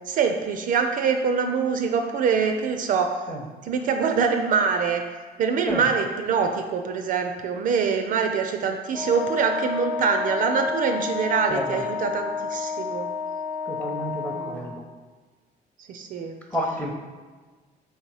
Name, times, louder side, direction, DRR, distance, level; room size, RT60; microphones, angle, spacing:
voice 1, 0.1-3.1 3.6-5.0 5.4-13.1 14.3-14.8 15.9-16.3, right 6 dB, 55° right, 5 dB, 0.4 m, -24 dB
Wind instrument woodwind instrument, 8.9-14.7, left 5 dB, 55° left, 0.8 m, -30 dB
voice 2, 11.5-11.8 13.7-14.8 16.5-16.9, equal, 10° left, 0 dB, 0.7 m, -30 dB
3.3 x 2.8 x 4.6 m, 1.4 s
cardioid pair, 110°, 17 cm